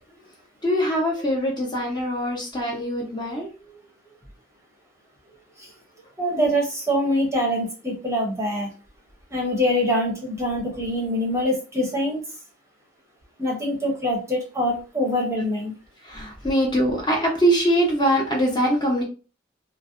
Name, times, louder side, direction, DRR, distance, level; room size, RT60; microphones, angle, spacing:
voice 1, 0.6-3.5 16.0-19.0, equal, 25° left, -1 dB, 0.7 m, -22 dB
voice 2, 6.2-8.7 9.3-12.2 13.4-15.7, equal, 15° right, -1 dB, 0.7 m, -24 dB
2.5 x 2.1 x 2.4 m, 0.34 s
head